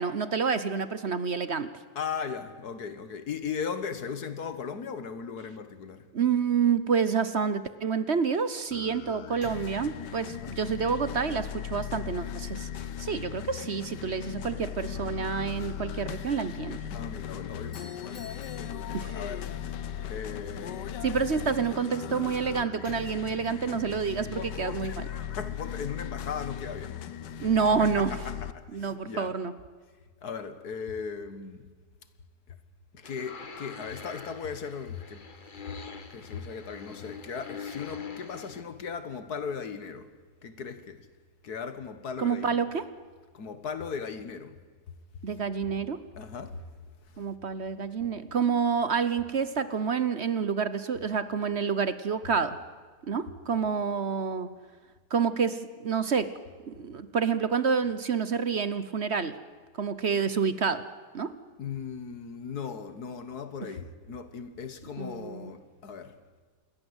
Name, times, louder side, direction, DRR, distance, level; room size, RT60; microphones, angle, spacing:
voice 1, 0.0-1.7 6.1-12.7 13.0-16.8 18.9-19.1 21.0-25.0 27.4-28.2 28.7-29.5 42.2-42.8 45.2-46.0 47.2-52.6 53.0-54.5 55.1-56.3 56.7-59.3 59.8-60.8 61.1-61.4 65.0-65.5, right 6 dB, 45° right, 1.1 m, -28 dB
voice 2, 2.0-6.1 10.3-10.6 16.9-18.3 18.5-19.5 20.1-21.0 24.3-27.0 27.8-29.3 30.2-31.7 32.5-32.6 32.9-35.3 36.1-40.1 40.4-41.1 41.4-42.6 43.3-44.6 46.2-46.6 47.0-47.2 61.6-66.2, left 6 dB, 65° left, 2.0 m, -38 dB
sound 1, 8.7-28.5, left 9 dB, 90° left, 1.6 m, -38 dB
Doorbell, 17.5-19.7, left 2 dB, 50° left, 4.2 m, -53 dB
sound 2, 33.0-38.6, left 5 dB, 30° left, 1.6 m, -44 dB
28.0 x 21.5 x 8.1 m
omnidirectional pair, 1.8 m